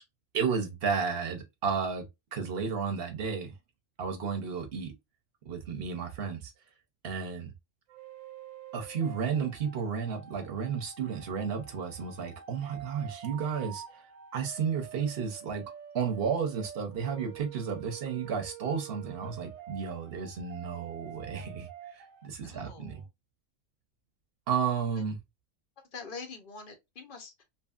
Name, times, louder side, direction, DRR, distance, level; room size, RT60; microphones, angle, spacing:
voice 1, 0.3-2.1 2.3-3.5 4.0-4.9 5.4-6.5 7.0-7.5 8.7-14.0 14.3-15.6 15.9-23.0 24.5-25.2, right 6 dB, 55° right, 0.8 m, -32 dB
sound 1, 7.9-22.3, right 9 dB, 85° right, 1.1 m, -47 dB
voice 2, 22.4-23.1 25.9-27.4, left 4 dB, 50° left, 0.7 m, -45 dB
2.8 x 2.6 x 2.3 m
omnidirectional pair, 1.4 m